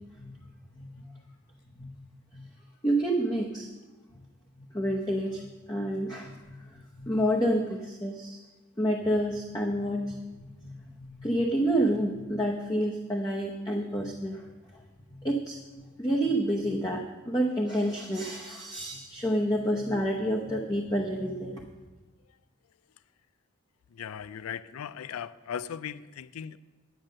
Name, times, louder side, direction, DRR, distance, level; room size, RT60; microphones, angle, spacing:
voice 1, 2.8-3.7 4.7-8.4 8.8-14.4 15.1-15.6 16.0-21.6, right 1 dB, 20° left, -1 dB, 0.9 m, -29 dB
voice 2, 23.9-26.6, left 8 dB, 85° left, 16 dB, 0.4 m, -38 dB
10.5 x 8.8 x 6.5 m, 1.3 s
head